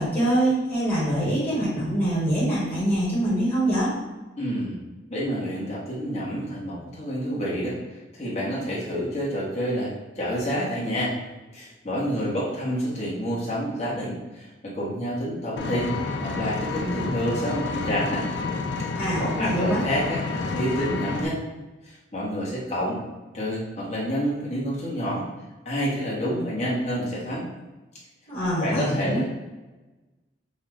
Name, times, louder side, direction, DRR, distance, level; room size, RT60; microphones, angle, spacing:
voice 1, 0.0-3.9 18.9-19.8 28.3-29.2, right 1 dB, 10° left, -11 dB, 1.4 m, -24 dB
voice 2, 4.4-4.8 5.1-11.1 11.5-15.9 16.2-18.2 19.2-21.4 21.8-23.0 23.3-25.2 25.6-27.5 28.6-29.2, equal, 35° left, -6 dB, 1.4 m, -28 dB
Vehicle, 15.6-21.3, left 3 dB, 70° left, 0.4 m, -29 dB
5.4 x 2.4 x 3.2 m, 1.1 s
head